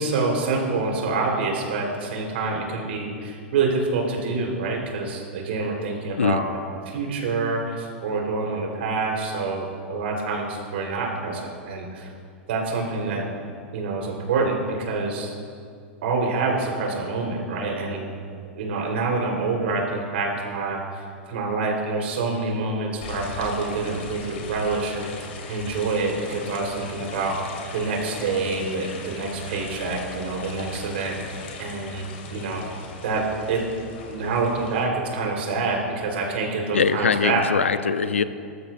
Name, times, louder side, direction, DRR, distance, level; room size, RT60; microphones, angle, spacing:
voice 1, 0.0-6.6 6.9-12.1 12.5-13.2 13.7-15.3 16.0-18.1 18.5-32.6 33.0-33.6 34.1-37.4, right 3 dB, 65° right, 0 dB, 3.8 m, -27 dB
sound 1, 23.0-34.8, left 4 dB, 70° left, 2.5 m, -39 dB
voice 2, 36.7-38.2, left 6 dB, 90° left, 13 dB, 0.6 m, -22 dB
20.0 x 13.5 x 2.6 m, 2.3 s
hypercardioid pair, 100°, 7 cm